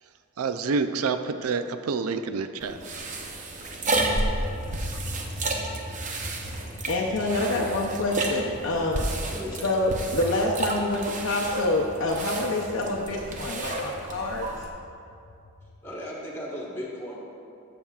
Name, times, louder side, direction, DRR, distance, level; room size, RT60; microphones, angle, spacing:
voice 1, 0.4-2.8, right 4 dB, 85° right, 10 dB, 0.4 m, -28 dB
sound 1, 2.6-14.7, right 2 dB, 35° right, 0.6 m, -32 dB
sound 2, 3.9-15.8, equal, 40° left, 1.1 m, -41 dB
voice 2, 6.9-9.1 9.6-14.5, left 2 dB, 65° left, -3 dB, 0.6 m, -27 dB
voice 3, 9.3-9.7 15.8-17.2, equal, 10° left, -5 dB, 1.3 m, -36 dB
12.5 x 7.1 x 2.4 m, 2.5 s
head